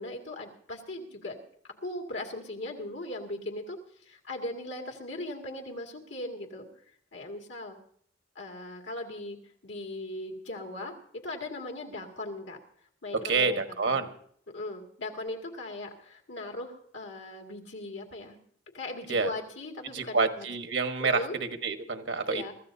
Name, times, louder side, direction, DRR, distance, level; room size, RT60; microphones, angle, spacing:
voice 1, 0.0-1.4 1.8-3.8 4.1-6.7 7.1-7.8 8.4-9.4 9.6-11.0 11.2-12.6 13.0-14.0 14.5-18.4 18.7-20.5 21.0-21.3 22.3-22.5, left 1 dB, 75° left, 1 dB, 2.2 m, -38 dB
voice 2, 13.2-14.1 19.1-19.3 19.9-22.5, right 4 dB, 75° right, 7 dB, 1.3 m, -28 dB
23.5 x 14.0 x 2.7 m, 0.62 s
head